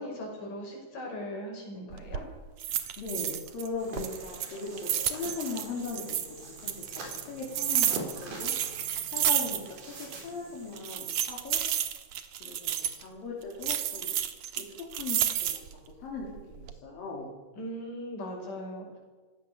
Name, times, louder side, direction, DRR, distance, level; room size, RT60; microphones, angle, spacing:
voice 1, 0.0-2.2 17.6-18.9, equal, 70° left, 1 dB, 7.2 m, -39 dB
sound 1, 1.9-2.2 2.6-3.7 4.0-6.3 6.7-9.8 10.1-10.2 10.8-13.0 13.6-15.7 16.2-16.7, right 10 dB, 65° right, 2.4 m, -31 dB
voice 2, 3.0-8.5 9.1-11.6 12.4-14.1 14.6-17.3, left 4 dB, 85° left, -3 dB, 5.1 m, -39 dB
sound 2, 3.8-10.8, right 2 dB, 90° right, 6.2 m, -44 dB
25.0 x 17.0 x 6.9 m, 1.4 s
omnidirectional pair, 3.9 m